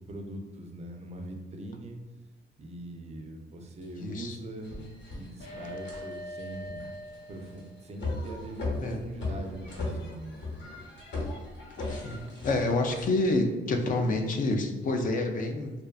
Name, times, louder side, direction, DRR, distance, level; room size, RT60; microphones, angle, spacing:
voice 1, 0.1-2.0 2.6-4.7 5.1-6.9 7.3-10.7, right 1 dB, 35° right, 3 dB, 0.4 m, -42 dB
sound 1, 3.8-3.9 4.4-13.1, left 2 dB, 65° left, 1.0 m, -38 dB
voice 2, 4.0-4.4 8.8-9.0 11.9-15.7, left 2 dB, 45° left, 4 dB, 0.4 m, -28 dB
sound 2, 5.4-8.0 9.6-9.8 11.8-12.4, equal, 85° left, 0.6 m, -43 dB
2.6 x 2.2 x 2.3 m, 1.2 s
cardioid pair, 90°, 20 cm